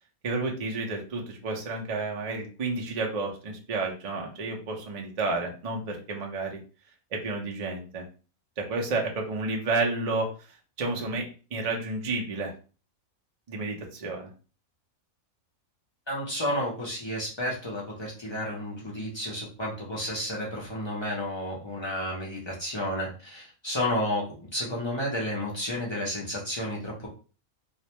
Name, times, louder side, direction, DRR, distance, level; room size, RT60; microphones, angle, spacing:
voice 1, 0.2-6.6 7.1-8.0 8.6-10.3 10.8-12.5 13.5-14.3, right 3 dB, 65° right, 1 dB, 0.3 m, -31 dB
voice 2, 16.1-24.3 24.5-27.1, left 1 dB, 45° left, -4 dB, 0.3 m, -31 dB
2.4 x 2.1 x 2.8 m, 0.36 s
omnidirectional pair, 1.4 m